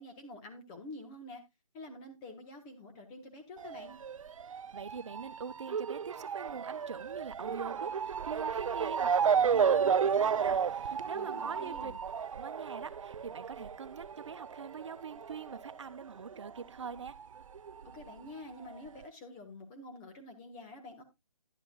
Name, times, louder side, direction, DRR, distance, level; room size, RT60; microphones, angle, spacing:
voice 1, 0.0-1.4 1.7-4.0 11.1-12.0 17.8-21.0, left 2 dB, 15° left, 1.4 m, -48 dB
Motor vehicle (road) / Siren, 3.6-16.6 16.9-18.0 18.7-18.8 19.0-19.1, right 7 dB, 75° right, 0.4 m, -32 dB
voice 2, 4.5-11.9 12.3-17.2, right 6 dB, 60° right, 1.0 m, -44 dB
11.0 x 11.0 x 2.3 m
hypercardioid pair, 165°, 17 cm